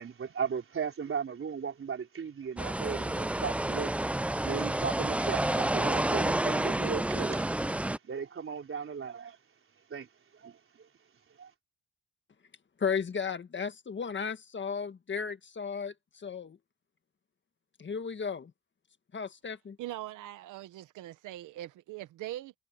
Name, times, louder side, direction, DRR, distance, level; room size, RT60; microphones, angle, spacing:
voice 1, 0.0-4.1 4.4-7.5 8.0-9.4 9.9-10.1 10.3-10.9 11.4-11.5, right 6 dB, 45° right, 4.3 m, -36 dB
sound 1, 2.6-8.0, right 1 dB, 5° right, 0.4 m, -29 dB
voice 2, 12.8-16.6 17.8-18.5 19.1-19.8, left 6 dB, 40° left, 1.7 m, -34 dB
voice 3, 19.8-22.5, right 14 dB, 85° right, 1.0 m, -41 dB
cardioid pair, 90°, 30 cm